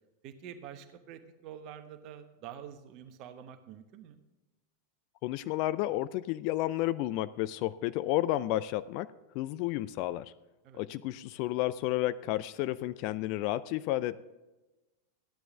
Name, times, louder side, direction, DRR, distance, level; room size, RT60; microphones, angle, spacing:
voice 1, 0.2-4.2 10.6-10.8, right 9 dB, 40° right, 8 dB, 1.1 m, -47 dB
voice 2, 5.2-10.3 10.8-14.2, left 15 dB, 45° left, 16 dB, 0.4 m, -31 dB
14.0 x 10.0 x 3.5 m, 1.1 s
figure-of-eight pair, 90°, 0 cm